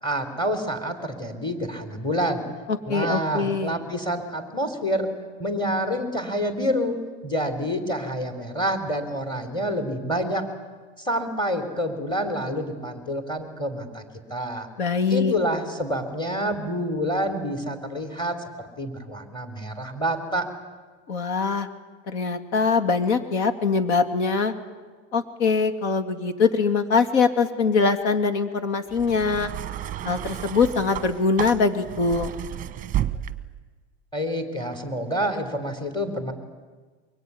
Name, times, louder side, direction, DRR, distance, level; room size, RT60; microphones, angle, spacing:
voice 1, 0.0-2.5 2.9-5.1 5.4-10.4 11.0-14.0 14.3-14.7 15.1-20.5 34.1-36.3, equal, 15° left, 5 dB, 3.7 m, -27 dB
voice 2, 2.7-3.8 14.8-15.3 21.1-21.7 22.1-24.5 25.1-29.5 30.0-32.3, left 4 dB, 80° left, 7 dB, 2.8 m, -23 dB
sound 1, 28.9-33.7 34.6-34.8, right 12 dB, 25° right, 1.0 m, -32 dB
23.5 x 22.5 x 9.7 m, 1.4 s
supercardioid pair, 140°, 33 cm